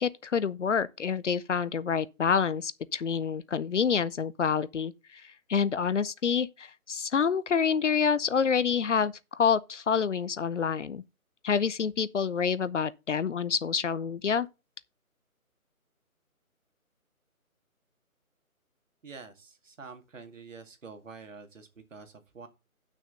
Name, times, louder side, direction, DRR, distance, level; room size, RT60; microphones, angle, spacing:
voice 1, 0.0-11.0 11.4-14.5, left 6 dB, 55° left, 0.6 m, -27 dB
voice 2, 19.0-22.5, right 4 dB, 60° right, 2.2 m, -47 dB
8.7 x 6.2 x 5.3 m
figure-of-eight pair, 155°, 43 cm